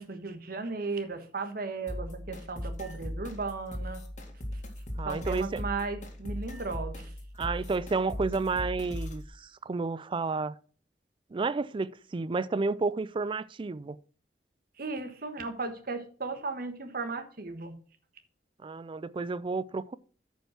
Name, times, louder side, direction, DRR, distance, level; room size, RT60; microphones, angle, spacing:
voice 1, 0.0-4.0 5.0-7.1 14.8-17.7, right 4 dB, 55° right, 1.3 m, -36 dB
sound 1, 1.9-9.3, left 1 dB, 45° left, 1.9 m, -38 dB
voice 2, 5.0-5.6 7.4-10.6 11.3-14.0 18.6-20.0, right 4 dB, 30° right, 0.4 m, -31 dB
9.1 x 5.5 x 5.9 m
head